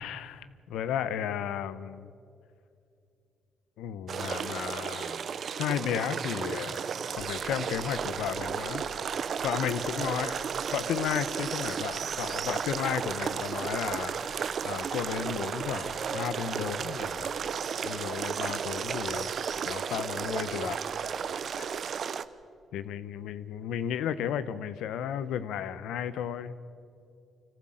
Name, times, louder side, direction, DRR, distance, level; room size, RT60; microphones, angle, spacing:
voice 1, 0.0-2.1 3.8-5.2 5.6-6.8 7.1-8.8 9.4-10.4 10.7-17.3 17.8-20.8 21.1-21.7 22.7-26.5, left 9 dB, 85° left, 14 dB, 0.8 m, -34 dB
sound 1, 4.1-22.2, right 7 dB, 55° right, 0.7 m, -33 dB
sound 2, 21.2-22.9, left 5 dB, 70° left, 1.2 m, -55 dB
25.0 x 14.5 x 7.8 m, 2.5 s
cardioid pair, 90°, 0 cm